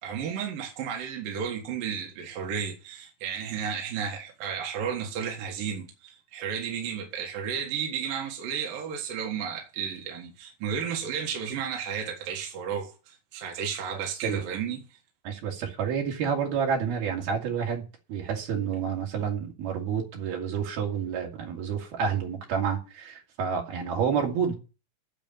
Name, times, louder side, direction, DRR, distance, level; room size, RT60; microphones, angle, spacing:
voice 1, 0.0-14.8, right 7 dB, 70° right, 3.3 m, -33 dB
voice 2, 15.2-17.8 18.1-24.6, right 7 dB, 85° right, 4.5 m, -29 dB
9.1 x 7.3 x 9.1 m
omnidirectional pair, 4.3 m